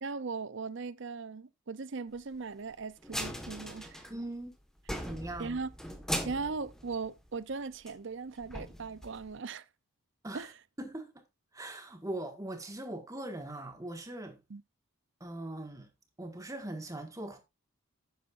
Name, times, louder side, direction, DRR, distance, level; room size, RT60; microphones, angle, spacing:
voice 1, 0.0-4.1 5.4-5.7 6.2-9.6 10.3-10.5 14.5-14.6, right 4 dB, 55° right, 0.6 m, -38 dB
sound 1, 3.0-4.5 4.8-7.5 7.9-8.0 8.4-9.4, equal, ahead, 1.5 m, -39 dB
voice 2, 4.1-4.5 5.0-5.6 10.2-10.5 10.8-11.2 11.5-14.4 15.2-15.9 16.2-17.4, right 1 dB, 15° right, 1.8 m, -40 dB
12.0 x 9.2 x 2.6 m
head